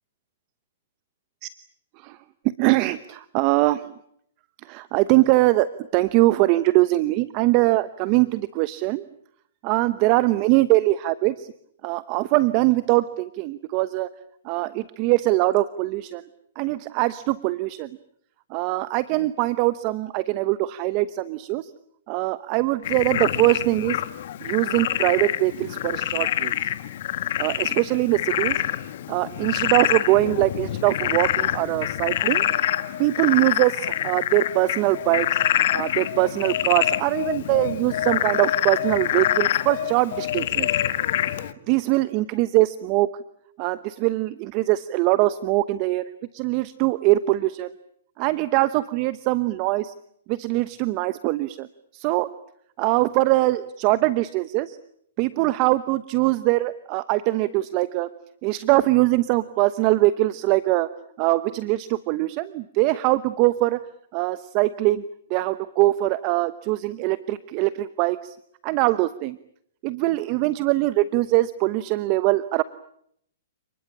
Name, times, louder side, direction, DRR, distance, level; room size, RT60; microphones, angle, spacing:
voice 1, 2.6-3.9 4.6-5.7 5.9-9.0 9.6-11.5 11.8-14.1 14.4-16.3 16.6-17.9 18.5-21.7 22.1-24.0 24.4-26.5 27.4-28.6 29.1-32.4 33.0-35.4 35.7-40.7 41.7-43.1 43.6-47.7 48.2-49.9 50.3-51.7 51.9-52.3 52.8-54.8 55.2-58.1 58.4-60.9 61.2-63.8 64.1-65.0 65.3-68.4 68.6-69.4 69.8-72.6, right 18 dB, 40° right, 15 dB, 1.0 m, -22 dB
Frog, 22.8-41.5, left 12 dB, 60° left, 1.7 m, -26 dB
29.5 x 20.5 x 8.8 m, 0.70 s
hypercardioid pair, 135°, 0 cm